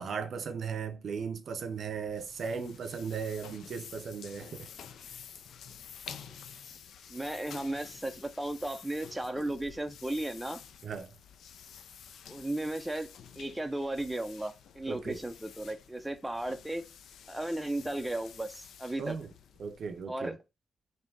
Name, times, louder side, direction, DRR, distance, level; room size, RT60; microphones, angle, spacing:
voice 1, 0.0-4.7 10.8-11.2 14.9-15.2 19.0-19.3 19.6-20.4, right 6 dB, 60° right, 0.6 m, -37 dB
sound 1, 1.7-20.1, left 8 dB, 80° left, 0.4 m, -50 dB
voice 2, 7.1-10.6 12.3-13.1 13.4-16.9 17.3-19.2 20.1-20.4, right 1 dB, 10° right, 0.4 m, -35 dB
3.6 x 2.7 x 3.8 m
cardioid pair, 90°, 0 cm